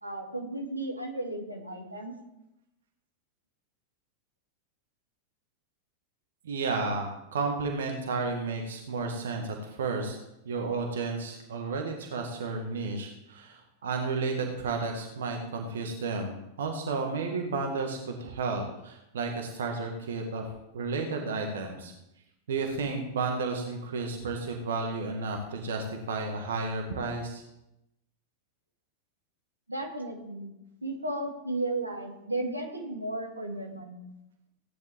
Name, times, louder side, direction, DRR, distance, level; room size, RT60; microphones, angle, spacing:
voice 1, 0.0-2.1 29.7-30.5 30.8-34.1, right 2 dB, 85° right, 1 dB, 2.4 m, -34 dB
voice 2, 6.4-10.2 10.5-20.5 20.7-21.9 22.5-27.4, right 4 dB, 65° right, 2 dB, 1.9 m, -32 dB
17.0 x 10.5 x 3.7 m, 0.88 s
figure-of-eight pair, 90°, 0 cm